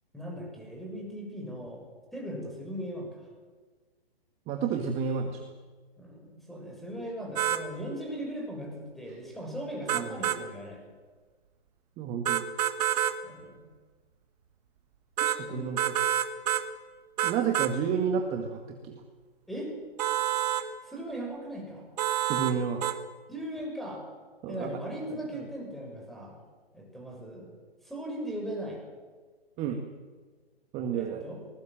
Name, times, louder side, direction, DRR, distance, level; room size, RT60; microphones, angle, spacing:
voice 1, 0.1-1.8 2.1-3.3 6.0-10.8 13.2-13.6 15.4-16.1 19.5-19.7 20.8-21.9 23.3-24.0 24.5-26.3 26.7-27.5 27.8-28.8 30.9-31.4, equal, ahead, 0 dB, 6.7 m, -38 dB
voice 2, 4.5-5.4 9.9-10.1 12.0-12.4 15.2-16.0 17.2-19.0 22.2-22.9 24.4-24.7 25.1-25.5 29.6-29.8 30.7-31.3, right 7 dB, 20° right, 5 dB, 1.8 m, -31 dB
sound 1, 7.4-7.6 9.9-10.4 12.3-13.2 15.2-15.4 15.8-16.7 17.2-17.7 20.0-20.7 22.0-22.6 22.8-23.0, right 12 dB, 40° right, 1.7 m, -27 dB
24.0 x 20.5 x 7.6 m, 1.4 s
figure-of-eight pair, 135°, 31 cm